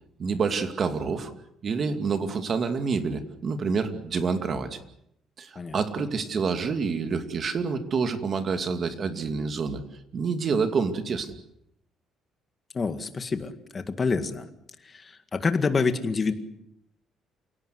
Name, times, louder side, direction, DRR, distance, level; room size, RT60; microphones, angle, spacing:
voice 1, 0.2-1.3 1.6-4.8 5.4-9.8 10.1-11.3, right 5 dB, 40° right, 8 dB, 2.5 m, -27 dB
voice 2, 5.6-6.0 12.7-14.5 14.8-16.3, left 4 dB, 25° left, 9 dB, 1.9 m, -27 dB
28.5 x 17.5 x 8.0 m, 0.77 s
cardioid pair, 145°, 0 cm